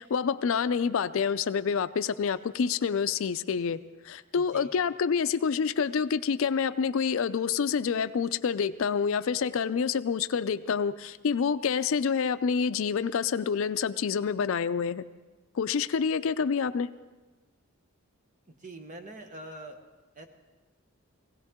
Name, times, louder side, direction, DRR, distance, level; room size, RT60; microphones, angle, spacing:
voice 1, 0.0-3.8 4.0-15.0 15.5-16.9, left 6 dB, 65° left, 13 dB, 0.4 m, -27 dB
voice 2, 4.3-4.8 18.5-19.8 20.1-20.3, right 1 dB, 35° right, 6 dB, 1.1 m, -44 dB
19.0 x 16.5 x 3.6 m, 1.2 s
head